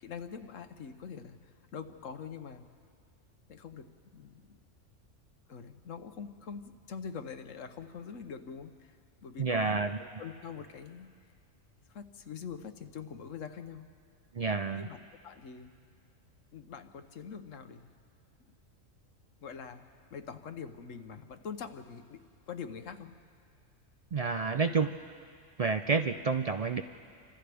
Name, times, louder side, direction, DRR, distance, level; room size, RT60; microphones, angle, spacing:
voice 1, 0.0-2.6 3.5-4.6 5.5-9.0 9.2-9.9 10.2-11.1 11.9-13.9 14.7-15.0 15.2-15.7 16.5-17.9 19.4-23.1, left 6 dB, 75° left, 8 dB, 1.3 m, -44 dB
voice 2, 9.4-10.0 14.3-14.9 24.1-24.9 25.6-26.8, right 4 dB, 75° right, 7 dB, 0.3 m, -29 dB
30.0 x 25.5 x 3.4 m, 2.2 s
omnidirectional pair, 1.4 m